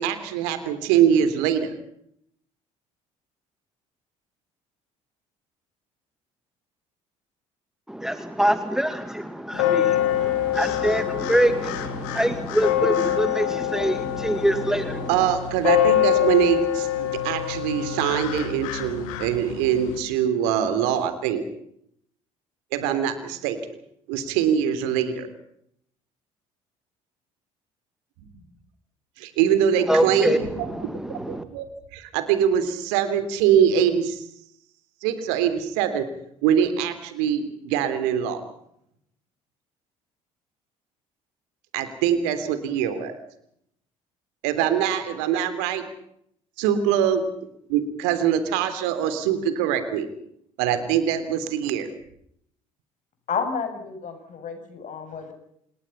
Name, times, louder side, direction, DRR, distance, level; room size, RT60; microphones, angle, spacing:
voice 1, 0.0-1.7 15.1-21.4 22.7-23.6 24.1-25.3 29.2-30.7 31.1-31.7 31.9-34.2 35.0-36.1 36.4-38.4 41.7-43.2 44.4-45.8 46.6-47.2 47.7-50.1 50.6-51.9, right 9 dB, 70° right, 11 dB, 3.5 m, -23 dB
voice 2, 7.9-15.3 29.9-31.4, equal, 5° right, 10 dB, 2.2 m, -25 dB
sound 1, 9.5-20.0, left 11 dB, 75° left, 2.8 m, -25 dB
voice 3, 53.3-55.3, left 6 dB, 50° left, 7 dB, 7.8 m, -31 dB
28.0 x 21.0 x 5.8 m, 0.70 s
hypercardioid pair, 55°, 17 cm